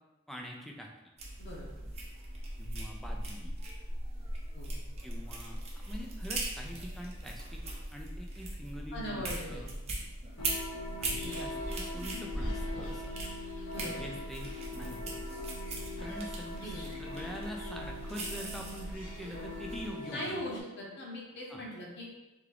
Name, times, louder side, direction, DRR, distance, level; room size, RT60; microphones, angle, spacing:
voice 1, 0.3-0.9 2.6-3.6 5.0-5.6 5.8-7.6 7.9-9.7 10.4-10.5 11.0-13.1 13.7-15.2 16.0-20.4 21.5-21.6, equal, ahead, 0 dB, 0.4 m, -44 dB
sound 1, 1.2-19.9, right 1 dB, 30° right, 0.7 m, -39 dB
voice 2, 8.9-9.7 12.7-12.9 13.7-14.0 16.5-16.9 20.1-22.1, equal, 50° left, -3 dB, 0.9 m, -40 dB
sound 2, 10.4-20.6, left 2 dB, 80° left, 0.9 m, -42 dB
3.6 x 3.4 x 3.4 m, 1.0 s
head